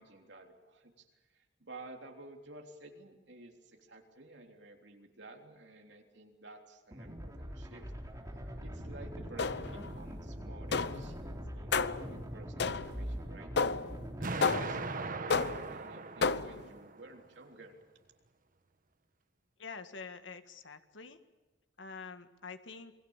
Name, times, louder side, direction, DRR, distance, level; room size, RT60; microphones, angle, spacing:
voice 1, 0.0-7.9 8.6-13.5 14.2-17.8, right 2 dB, 70° right, 3 dB, 3.5 m, -52 dB
sound 1, 6.9-14.3, equal, 20° right, 3.7 m, -43 dB
sound 2, 9.4-9.9 10.7-11.1 11.7-12.1 12.6-13.1 13.6-14.0 14.4-14.9 15.3-15.8 16.2-16.7, left 4 dB, 60° left, 0.8 m, -31 dB
Explosion, 14.2-17.2, right 3 dB, 50° right, 1.3 m, -39 dB
voice 2, 19.6-21.2 21.8-22.9, left 5 dB, 85° left, 9 dB, 1.8 m, -46 dB
28.5 x 21.0 x 7.4 m, 1.2 s
head